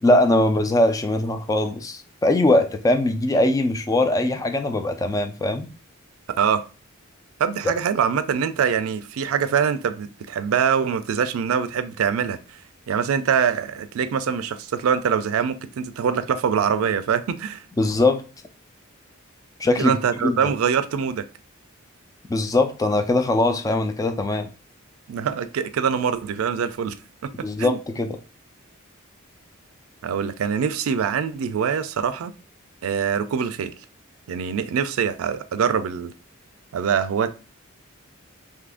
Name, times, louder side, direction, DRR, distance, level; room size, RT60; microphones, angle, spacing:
voice 1, 0.0-5.7 17.8-18.2 19.6-20.0 20.2-20.5 22.3-24.5 27.4-28.1, left 2 dB, 15° left, 0.3 m, -21 dB
voice 2, 7.4-12.4 12.9-17.6 19.8-21.3 25.1-27.0 27.2-27.8 30.0-32.3 32.8-33.7 34.3-36.1 36.7-37.5, right 7 dB, 90° right, 0.4 m, -24 dB
2.7 x 2.5 x 3.5 m
head